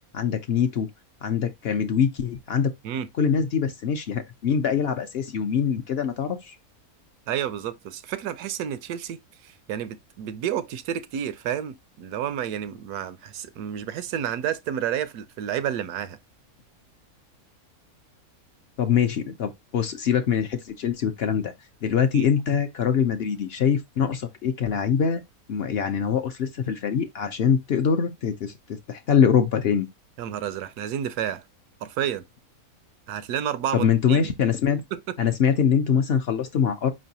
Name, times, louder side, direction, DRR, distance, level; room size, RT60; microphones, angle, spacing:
voice 1, 0.1-0.9 1.2-2.7 3.2-6.6 18.8-21.5 21.8-25.2 25.5-29.9 33.7-34.8 35.2-36.9, left 7 dB, 65° left, 0.6 m, -23 dB
voice 2, 7.3-9.2 9.4-16.2 22.1-22.3 30.2-31.4 31.8-32.2 33.1-34.2 34.9-35.2, right 9 dB, 90° right, 1.1 m, -30 dB
5.2 x 3.1 x 2.7 m
omnidirectional pair, 1.6 m